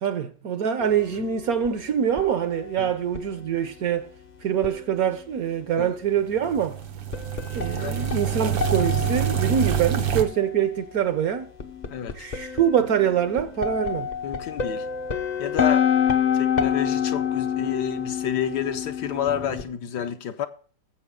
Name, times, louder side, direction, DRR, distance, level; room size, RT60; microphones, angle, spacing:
voice 1, 0.0-4.1 4.4-6.8 7.5-11.5 12.1-14.1, right 8 dB, 60° right, 1.1 m, -24 dB
sound 1, 0.8-1.7 2.2-3.3 4.6-5.0 7.1-10.8 11.6-19.7, left 8 dB, 40° left, 0.6 m, -28 dB
sound 2, 6.4-10.2, right 10 dB, 85° right, 1.9 m, -26 dB
voice 2, 11.9-12.3 14.2-14.9 15.4-15.9 16.3-20.5, left 9 dB, 70° left, 1.3 m, -30 dB
18.5 x 7.6 x 3.7 m
omnidirectional pair, 2.0 m